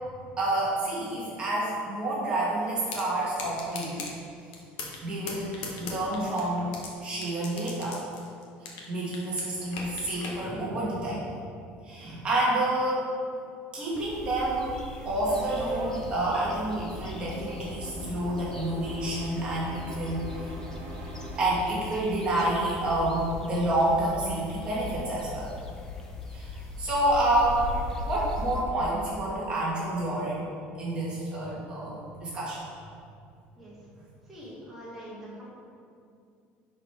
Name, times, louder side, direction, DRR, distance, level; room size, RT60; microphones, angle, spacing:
voice 1, 0.4-4.0 5.0-8.0 8.9-11.3 11.8-13.0 13.7-14.8 15.1-20.5 21.4-25.6 26.3-27.7 28.1-30.4 30.8-32.6, right 1 dB, 25° right, -6 dB, 1.8 m, -29 dB
sound 1, 2.9-3.0 3.4-4.1 4.5-5.0 5.3-6.9 7.2-8.9 9.1-10.4, left 4 dB, 70° left, 1.6 m, -38 dB
sound 2, 13.9-28.6, left 3 dB, 15° left, 0.8 m, -40 dB
sound 3, 15.3-21.5, right 1 dB, 50° right, 1.7 m, -43 dB
voice 2, 34.3-35.4, equal, 5° right, -9 dB, 1.7 m, -43 dB
10.5 x 4.9 x 4.6 m, 2.4 s
cardioid pair, 175°, 4 cm